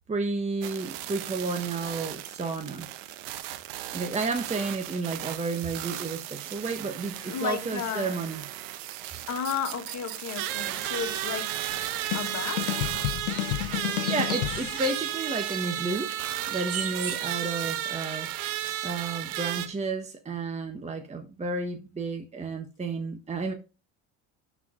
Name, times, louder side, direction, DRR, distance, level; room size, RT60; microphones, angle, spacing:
voice 1, 0.1-2.9 3.9-8.5 13.8-16.1 16.5-18.3 18.8-23.5, right 3 dB, 20° right, 1.2 m, -32 dB
sound 1, 0.6-19.7, right 13 dB, 85° right, 1.1 m, -34 dB
voice 2, 7.2-8.2 9.3-11.6 12.1-12.8, left 7 dB, 45° left, 2.0 m, -33 dB
sound 2, 11.7-15.2, left 15 dB, 85° left, 0.8 m, -31 dB
sound 3, 13.0-13.4 13.8-17.7, right 6 dB, 40° right, 2.0 m, -39 dB
11.5 x 4.8 x 3.8 m
supercardioid pair, 95°, 37 cm